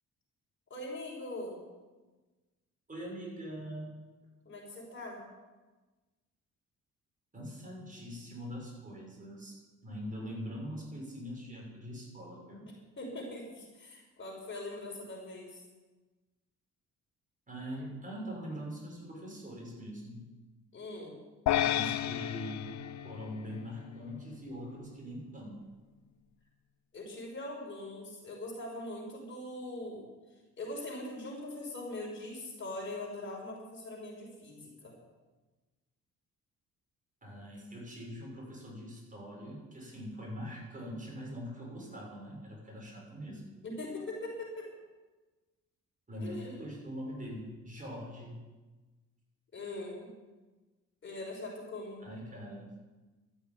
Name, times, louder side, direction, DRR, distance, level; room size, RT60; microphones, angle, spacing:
voice 1, 0.7-1.6 4.4-5.3 13.0-15.6 20.7-21.1 26.9-30.1 30.6-35.0 43.6-44.7 46.2-46.5 49.5-50.1 51.0-52.0, left 2 dB, 40° left, -1 dB, 5.9 m, -41 dB
voice 2, 2.9-3.9 7.3-9.6 9.8-12.7 17.5-20.3 21.5-22.7 23.0-25.7 37.2-43.5 46.1-48.4 52.0-52.7, equal, 25° right, -2 dB, 6.6 m, -42 dB
sound 1, 21.5-23.9, left 11 dB, 70° left, 0.7 m, -32 dB
13.0 x 9.7 x 9.3 m, 1.2 s
cardioid pair, 90°, 30 cm